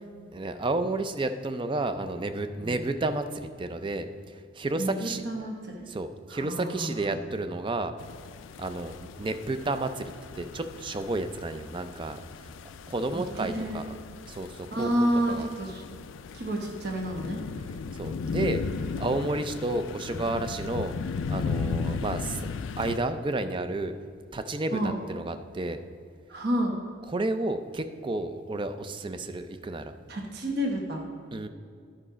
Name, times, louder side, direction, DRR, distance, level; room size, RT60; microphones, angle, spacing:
voice 1, 0.3-5.2 5.9-7.9 8.6-12.5 12.9-14.0 14.2-15.5 17.9-18.6 19.0-20.9 21.3-22.5 22.8-23.9 24.3-25.8 27.0-29.9 31.3-31.5, right 2 dB, 25° right, 9 dB, 0.3 m, -31 dB
voice 2, 4.7-5.8 6.3-6.9 13.1-13.8 14.7-15.8 16.3-17.4 24.7-25.0 26.3-26.8 30.1-31.0, right 1 dB, 50° right, 1 dB, 1.0 m, -30 dB
sound 1, 8.0-23.0, left 5 dB, 65° left, 0.3 m, -36 dB
11.0 x 5.0 x 5.0 m, 2.3 s
head